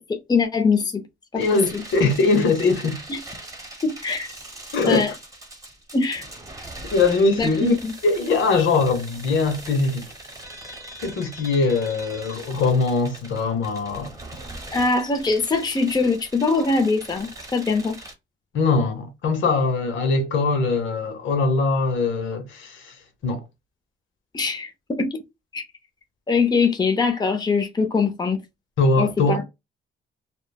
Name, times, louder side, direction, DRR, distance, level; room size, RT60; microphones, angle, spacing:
voice 1, 0.1-1.0 1.3-1.4 1.7-1.8 3.1-3.2 3.8-4.3 4.8-5.1 5.9-6.2 7.4-7.9 14.7-18.0 24.3-25.2 25.5-25.6 26.3-28.4 29.0-29.4, left 4 dB, 20° left, 0.6 m, -22 dB
voice 2, 1.4-3.0 4.7-5.1 6.9-7.7 8.0-10.1 11.0-14.1 18.5-23.0 23.2-23.4 28.8-29.4, left 3 dB, 75° left, 0.8 m, -21 dB
sound 1, 1.4-18.1, right 1 dB, 15° right, 0.9 m, -41 dB
3.0 x 2.1 x 2.2 m
cardioid pair, 90°, 20 cm